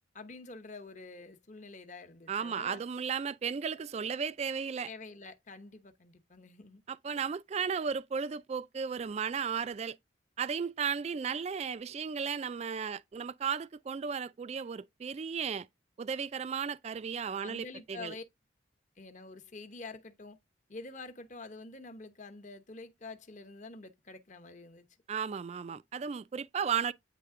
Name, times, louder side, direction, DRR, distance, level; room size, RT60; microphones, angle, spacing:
voice 1, 0.1-2.8 4.9-6.8 17.4-18.2 19.0-20.4 20.7-24.9, left 3 dB, 40° left, 0.9 m, -47 dB
voice 2, 2.3-4.9 6.9-10.0 10.4-15.7 16.0-18.1 25.1-26.9, right 6 dB, 35° right, 0.3 m, -35 dB
9.2 x 3.3 x 3.7 m
head